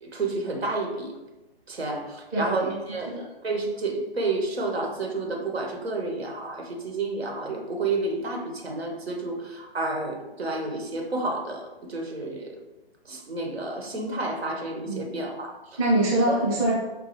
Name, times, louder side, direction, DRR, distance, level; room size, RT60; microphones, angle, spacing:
voice 1, 0.0-1.1 1.7-3.2 3.4-12.6 13.0-15.8 16.3-16.4, right 2 dB, 85° right, 2 dB, 1.0 m, -30 dB
voice 2, 2.9-3.2 14.9-15.1 15.8-16.7, right 1 dB, 10° right, -8 dB, 0.4 m, -24 dB
5.2 x 2.3 x 3.0 m, 1.1 s
figure-of-eight pair, 140°, 31 cm